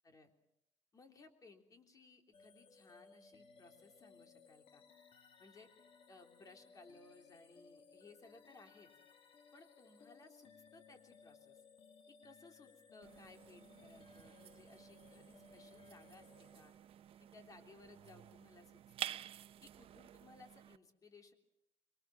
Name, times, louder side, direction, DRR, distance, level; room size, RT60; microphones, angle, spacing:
voice 1, 0.9-4.8 5.4-5.7 6.1-8.9 9.5-11.6 12.1-16.7 17.2-19.2 19.6-21.3, left 3 dB, 35° left, 5 dB, 3.4 m, -61 dB
sound 1, 2.3-17.1, left 5 dB, 60° left, 2.7 m, -63 dB
sound 2, 13.0-20.8, right 11 dB, 60° right, 0.8 m, -51 dB
26.5 x 22.5 x 6.1 m, 0.83 s
cardioid pair, 115°, 11 cm